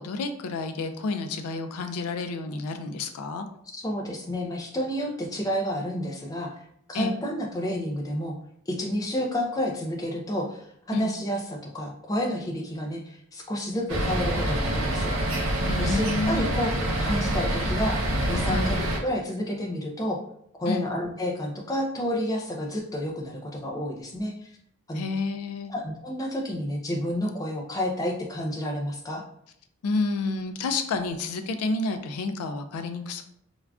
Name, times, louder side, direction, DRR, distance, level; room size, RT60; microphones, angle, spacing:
voice 1, 0.0-3.5 6.9-7.2 10.9-11.1 15.7-16.5 18.4-18.8 20.7-20.9 24.9-25.7 29.8-33.2, left 3 dB, 85° left, 7 dB, 0.4 m, -30 dB
voice 2, 3.7-6.6 6.9-8.3 8.7-15.1 15.8-16.7 17.0-20.2 20.6-24.6 24.9-25.0 25.7-29.2, equal, 15° left, 0 dB, 0.3 m, -30 dB
sound 1, 13.9-19.0, right 1 dB, 65° right, 0.6 m, -26 dB
3.5 x 2.3 x 2.3 m, 0.70 s
head